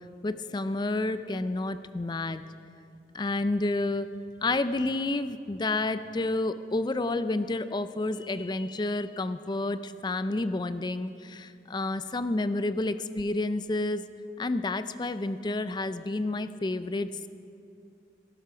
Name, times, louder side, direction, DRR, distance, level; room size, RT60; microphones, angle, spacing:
voice 1, 0.2-2.4 3.1-4.1 4.4-14.0 14.4-17.3, left 2 dB, 25° left, 12 dB, 0.4 m, -30 dB
17.0 x 11.0 x 5.7 m, 2.6 s
head